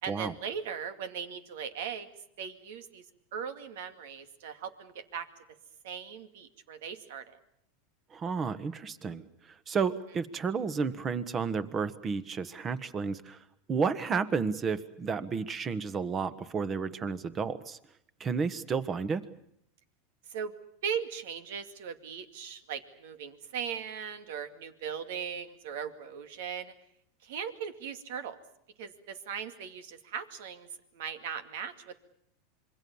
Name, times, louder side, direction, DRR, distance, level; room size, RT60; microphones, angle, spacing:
voice 1, 0.0-2.1 2.4-3.0 3.3-5.3 5.8-7.4 20.3-20.5 20.8-26.7 27.2-28.4 28.8-30.7 30.9-32.0, right 7 dB, 75° right, 10 dB, 2.3 m, -38 dB
voice 2, 8.1-13.4 13.7-17.8 18.2-19.2, right 5 dB, 25° right, 14 dB, 1.5 m, -32 dB
26.5 x 23.0 x 7.2 m, 0.73 s
supercardioid pair, 125°, 0 cm